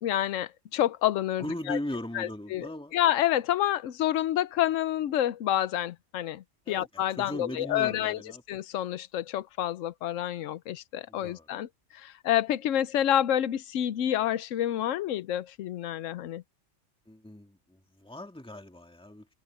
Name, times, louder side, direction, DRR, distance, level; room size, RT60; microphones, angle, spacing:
voice 1, 0.0-1.8 2.1-2.7 2.9-8.2 8.5-11.7 11.9-16.4, left 12 dB, 90° left, 1.0 m, -28 dB
voice 2, 1.4-3.0 6.7-8.4 11.1-11.5 17.1-19.3, left 1 dB, 5° left, 2.2 m, -38 dB
omnidirectional pair, 1.3 m